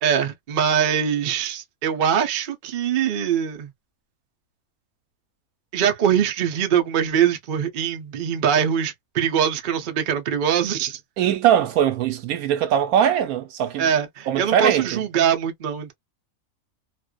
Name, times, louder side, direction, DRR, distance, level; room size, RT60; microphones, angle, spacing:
voice 1, 0.0-3.7 5.7-11.0 13.8-15.9, right 8 dB, 50° right, 0.6 m, -22 dB
voice 2, 11.2-13.9 14.3-15.0, right 10 dB, 85° right, 1.1 m, -21 dB
2.5 x 2.2 x 2.3 m
omnidirectional pair, 1.5 m